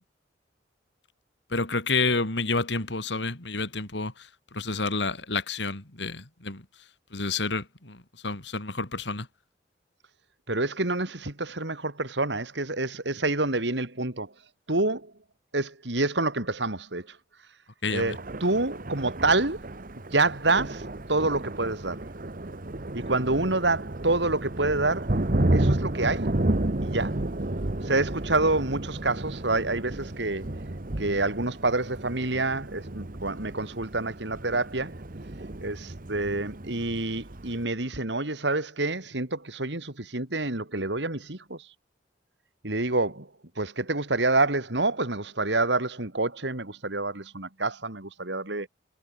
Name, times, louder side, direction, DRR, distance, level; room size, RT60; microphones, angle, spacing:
voice 1, 1.5-6.6 7.1-9.3 17.8-18.2, left 3 dB, 70° left, 3.0 m, -29 dB
voice 2, 10.5-14.3 14.7-15.1 15.5-17.2 17.9-19.6 20.0-22.0 22.9-25.2 25.5-26.4 26.8-27.2 27.8-30.5 31.0-34.9 35.6-41.7 42.6-43.3 43.6-48.7, right 2 dB, 70° right, 3.1 m, -27 dB
Thunder, 17.9-37.6, right 1 dB, 50° right, 1.3 m, -32 dB
head